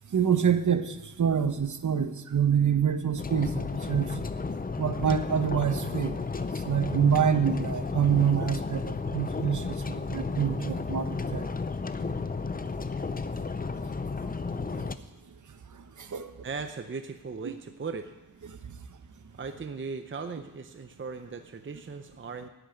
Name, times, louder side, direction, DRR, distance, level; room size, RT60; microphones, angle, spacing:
voice 1, 0.1-4.1 4.8-6.2 6.6-11.5 16.0-16.3, right 8 dB, 60° right, 9 dB, 1.0 m, -26 dB
sound 1, 3.2-15.0, left 4 dB, 25° left, 0.6 m, -33 dB
voice 2, 16.4-18.1 19.4-22.5, right 4 dB, 35° right, 7 dB, 0.7 m, -38 dB
11.5 x 8.4 x 9.1 m, 1.0 s
wide cardioid pair, 130°, 35 cm